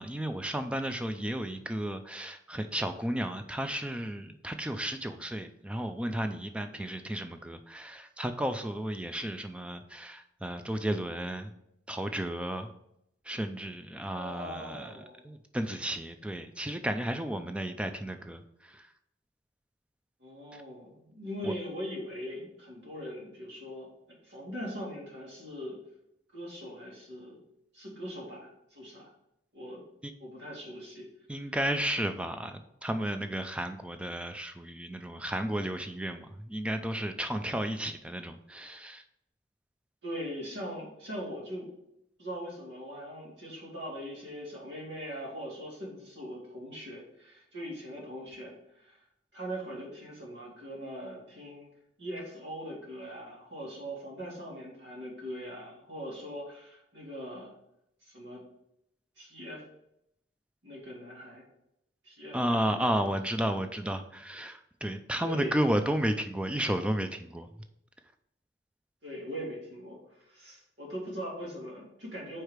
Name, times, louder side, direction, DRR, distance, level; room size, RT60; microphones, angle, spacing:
voice 1, 0.0-11.5 11.9-12.7 13.3-14.9 15.2-18.9 21.4-21.5 31.3-39.0 62.3-67.5, right 1 dB, 5° right, 8 dB, 0.3 m, -33 dB
voice 2, 14.1-15.3 20.2-23.9 24.2-25.8 26.3-27.4 27.7-29.1 29.5-29.8 30.2-31.5 40.0-41.7 42.2-49.0 49.3-51.7 52.0-57.5 58.0-58.4 59.2-59.6 60.6-61.4 62.0-63.1 65.2-65.6 69.0-72.4, equal, 75° right, -3 dB, 2.2 m, -41 dB
4.8 x 4.5 x 4.9 m, 0.80 s
head